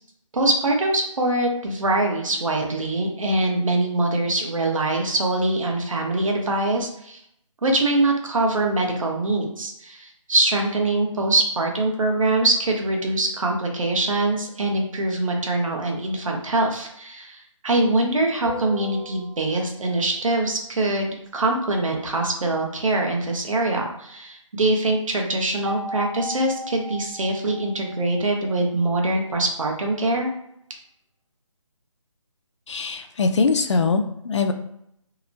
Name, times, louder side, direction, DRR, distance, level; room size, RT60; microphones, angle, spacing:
voice 1, 0.3-7.2 7.6-30.3, right 2 dB, 70° right, 1 dB, 0.8 m, -23 dB
sound 1, 18.4-20.0 25.6-29.0, equal, 35° right, 0.7 m, -37 dB
voice 2, 32.7-34.5, left 4 dB, 60° left, 7 dB, 0.4 m, -22 dB
2.8 x 2.0 x 2.6 m, 0.74 s
figure-of-eight pair, 160°, 17 cm